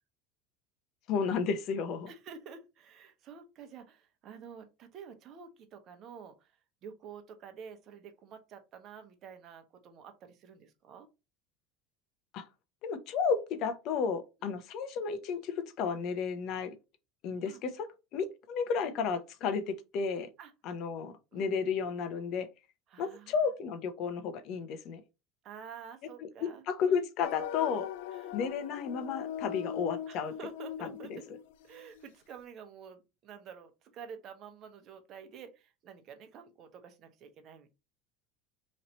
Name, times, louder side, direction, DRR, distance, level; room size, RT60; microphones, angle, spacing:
voice 1, 1.1-2.1 12.3-12.4 12.8-16.8 17.2-17.9 18.1-20.3 20.6-22.5 23.0-25.0 26.7-27.9 28.3-30.3 31.1-31.2, left 6 dB, 55° left, 0.8 m, -32 dB
voice 2, 2.1-6.5 6.8-11.1 14.4-14.6 17.4-17.6 20.4-20.5 21.3-21.5 22.9-23.3 25.4-27.0 28.1-28.4 30.1-31.3 31.6-37.7, right 6 dB, 50° right, 0.9 m, -49 dB
sound 1, 27.2-32.1, left 9 dB, 80° left, 0.4 m, -40 dB
3.2 x 2.8 x 4.1 m
supercardioid pair, 110°, 0 cm